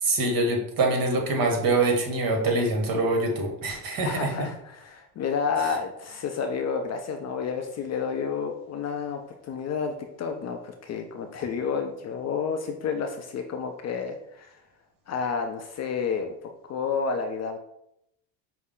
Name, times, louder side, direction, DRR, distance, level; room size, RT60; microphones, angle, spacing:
voice 1, 0.0-4.5, right 2 dB, 45° right, 2 dB, 1.2 m, -24 dB
voice 2, 4.0-14.6 15.1-16.3 16.6-17.6, left 5 dB, 35° left, 5 dB, 0.4 m, -30 dB
5.4 x 2.0 x 3.7 m, 0.79 s
supercardioid pair, 90°, 46 cm